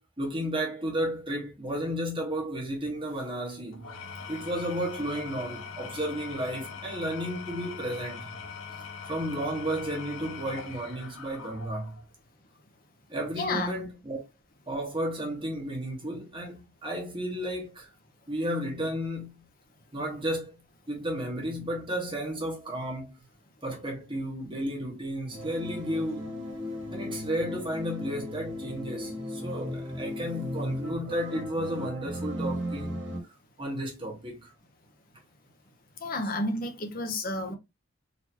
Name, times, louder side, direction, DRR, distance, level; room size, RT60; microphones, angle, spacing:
voice 1, 0.0-4.0 4.3-8.3 9.1-12.0 13.1-14.2 14.7-17.9 18.3-19.4 19.9-20.6 20.9-23.2 23.6-26.3 26.9-32.9 33.6-34.5, equal, 25° right, 1.3 m, -33 dB
Engine / Tools, 3.7-12.0, left 6 dB, 85° left, 1.0 m, -42 dB
voice 2, 13.4-13.8 35.9-37.5, left 2 dB, 45° left, 0.8 m, -31 dB
sound 1, 25.3-33.2, left 1 dB, 65° right, 1.8 m, -36 dB
4.2 x 3.0 x 2.8 m
head